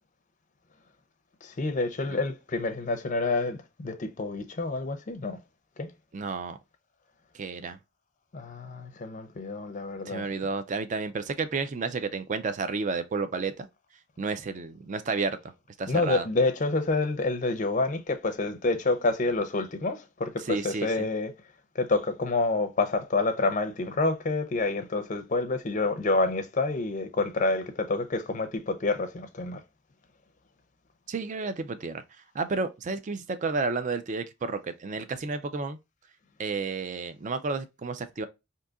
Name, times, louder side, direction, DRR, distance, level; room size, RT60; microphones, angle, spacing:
voice 1, 1.4-5.4 5.8-5.9 8.3-10.3 15.9-21.3 21.7-29.6, left 3 dB, 35° left, 0.5 m, -28 dB
voice 2, 6.1-6.6 7.3-7.8 10.1-13.7 14.2-15.4 15.8-16.3 20.4-21.1 31.1-32.0 32.3-35.8 36.4-38.3, right 4 dB, 35° right, 0.4 m, -31 dB
3.8 x 2.7 x 2.3 m
head